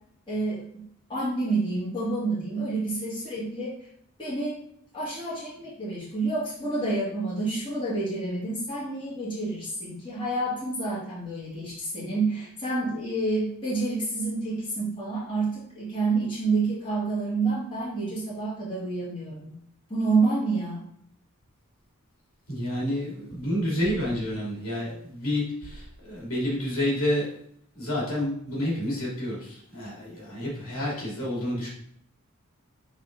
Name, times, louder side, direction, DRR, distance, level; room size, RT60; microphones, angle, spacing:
voice 1, 0.3-0.8 1.1-3.8 4.2-4.6 4.9-19.6 19.9-20.8, right 3 dB, 25° left, -9 dB, 2.5 m, -28 dB
voice 2, 22.5-27.3 27.8-31.7, left 1 dB, 70° left, -5 dB, 2.6 m, -29 dB
7.7 x 3.7 x 3.8 m, 0.67 s
head